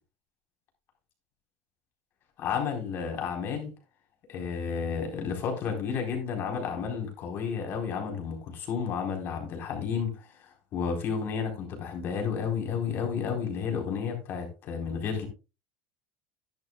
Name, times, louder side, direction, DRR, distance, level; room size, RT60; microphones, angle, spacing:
voice 1, 2.4-3.7 4.3-15.3, left 6 dB, 45° left, 4.2 m, -32 dB
11.0 x 10.5 x 2.3 m
supercardioid pair, 120°, 5 cm